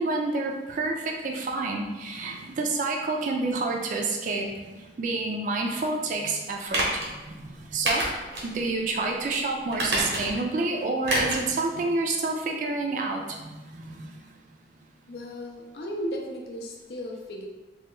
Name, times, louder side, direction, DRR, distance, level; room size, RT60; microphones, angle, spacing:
voice 1, 0.0-8.1 8.4-14.2, right 3 dB, 45° right, 1 dB, 0.3 m, -29 dB
sound 1, 6.7-7.1 7.9-8.5 8.9-9.0 9.7-10.5 11.0-11.5 11.8-11.9, right 1 dB, 85° right, 0.9 m, -27 dB
voice 2, 15.1-17.5, equal, 65° left, 0 dB, 0.4 m, -35 dB
3.3 x 2.2 x 2.9 m, 1.2 s
head